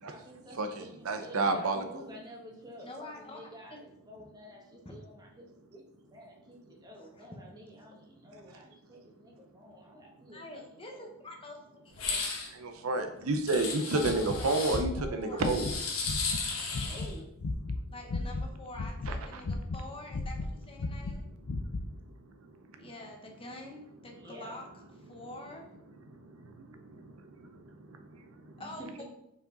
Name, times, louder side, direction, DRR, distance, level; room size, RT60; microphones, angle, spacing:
voice 1, 0.0-10.6 10.9-11.1 16.8-17.3 24.1-24.7 28.6-29.0, equal, 20° right, -2 dB, 1.4 m, -50 dB
voice 2, 0.5-1.8 12.5-15.7 16.5-16.8 19.1-19.4 21.6-21.7 22.2-22.9 26.1-28.6, right 2 dB, 75° right, 6 dB, 0.6 m, -32 dB
voice 3, 2.8-3.8 7.0-7.4 10.3-12.2 13.9-14.7 15.0-15.6 17.9-21.2 22.8-24.7 25.0-25.7 28.6-29.0, left 2 dB, 25° left, 2 dB, 1.1 m, -46 dB
sound 1, 11.9-12.5 13.5-14.8 15.4-17.1, left 4 dB, 85° left, 1.4 m, -35 dB
sound 2, 14.0-16.4 16.7-17.1 17.4-18.5 18.7-19.8 20.1-21.9, left 2 dB, 65° left, 0.5 m, -35 dB
5.5 x 4.9 x 3.8 m, 0.82 s
head